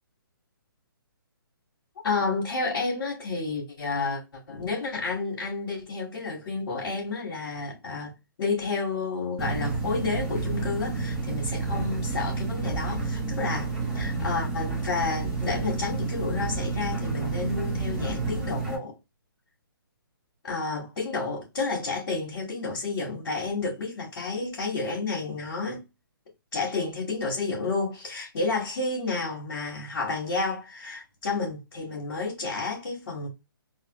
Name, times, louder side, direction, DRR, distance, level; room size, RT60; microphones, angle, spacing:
voice 1, 2.0-8.1 8.4-18.9 20.4-25.8 26.5-33.3, left 4 dB, 60° left, 1.9 m, -30 dB
sound 1, 9.4-18.8, right 3 dB, 5° right, 0.9 m, -30 dB
3.8 x 2.3 x 3.0 m
hypercardioid pair, 150°, 12 cm